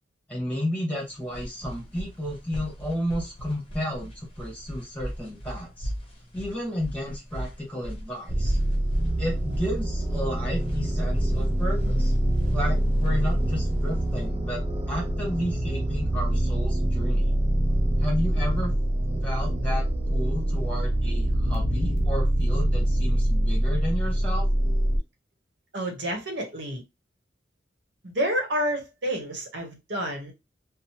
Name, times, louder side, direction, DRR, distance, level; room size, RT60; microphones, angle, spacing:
voice 1, 0.3-5.9 6.3-8.6 9.2-12.1 12.5-17.3 18.0-18.7 19.2-24.5, equal, 10° left, -1 dB, 1.3 m, -32 dB
sound 1, 1.0-14.2, equal, 35° left, 0.7 m, -38 dB
sound 2, 8.3-25.0, right 1 dB, 35° right, 0.5 m, -25 dB
voice 2, 25.7-26.8 28.0-30.3, equal, 75° right, 2 dB, 0.9 m, -29 dB
2.8 x 2.0 x 2.9 m, 0.23 s
head